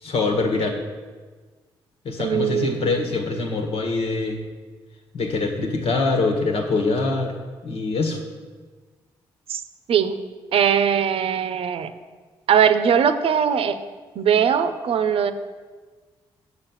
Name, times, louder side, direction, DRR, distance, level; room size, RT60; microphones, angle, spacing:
voice 1, 0.0-0.8 2.0-4.4 5.1-7.3 7.6-8.2, left 3 dB, 70° left, 2 dB, 1.7 m, -24 dB
voice 2, 2.2-2.9 9.5-9.6 9.9-10.1 10.5-11.9 12.5-13.8 14.2-15.3, right 8 dB, 65° right, 10 dB, 0.7 m, -20 dB
7.1 x 6.5 x 7.3 m, 1.4 s
supercardioid pair, 55°, 10 cm